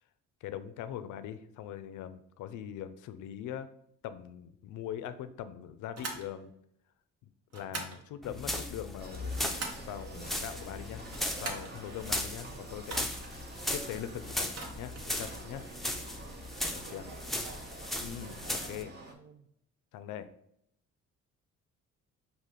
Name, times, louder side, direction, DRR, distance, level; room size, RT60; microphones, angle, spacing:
voice 1, 0.4-3.7 4.0-6.5 7.5-9.5 9.9-13.1 13.7-15.7 16.7-17.1 18.0-19.0 19.9-20.3, left 10 dB, 80° left, 12 dB, 0.4 m, -42 dB
sound 1, 5.9-6.3 7.5-8.0 9.1-9.9 11.0-11.7 12.8-13.4 14.4-15.1, right 3 dB, 55° right, 1.0 m, -41 dB
sound 2, 8.2-18.8, left 1 dB, ahead, 0.5 m, -37 dB
sound 3, 9.0-19.1, right 2 dB, 35° right, 0.9 m, -48 dB
voice 2, 16.7-17.2 17.4-17.6 18.4-19.4, right 7 dB, 85° right, 10 dB, 0.5 m, -54 dB
4.9 x 2.4 x 3.7 m, 0.74 s
cardioid pair, 90°, 30 cm